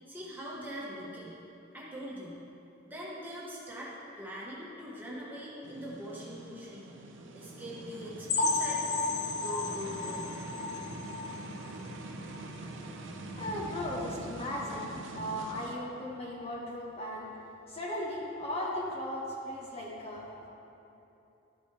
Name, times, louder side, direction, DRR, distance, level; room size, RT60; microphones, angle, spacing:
voice 1, 0.1-1.4 1.7-2.4 2.9-6.9 7.3-9.0 9.3-10.3, equal, 10° right, -6 dB, 1.3 m, -42 dB
sound 1, 5.6-15.7, right 2 dB, 75° right, 0.6 m, -44 dB
sound 2, 8.3-11.9 12.3-12.5 12.8-12.9 13.4-13.5, left 3 dB, 55° left, 0.5 m, -33 dB
voice 2, 13.3-17.3 17.7-20.3, left 1 dB, 30° left, -4 dB, 0.9 m, -37 dB
12.5 x 5.2 x 3.4 m, 2.9 s
head